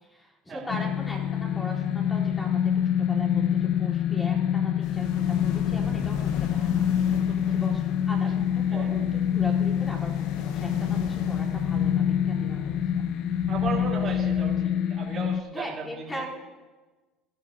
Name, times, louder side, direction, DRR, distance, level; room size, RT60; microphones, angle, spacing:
voice 1, 0.0-2.6 3.0-6.8 7.5-13.0 15.5-16.3, equal, 15° left, -4 dB, 3.2 m, -39 dB
sound 1, 0.7-15.4, left 9 dB, 60° left, 0.4 m, -26 dB
sound 2, 4.8-12.1, left 6 dB, 80° left, 0.9 m, -39 dB
sound 3, 5.1-14.5, right 3 dB, 90° right, 3.1 m, -45 dB
voice 2, 7.1-7.5 8.7-8.9 13.5-16.3, right 5 dB, 35° right, -4 dB, 2.9 m, -36 dB
20.0 x 14.0 x 2.6 m, 1.2 s
cardioid pair, 135°, 0 cm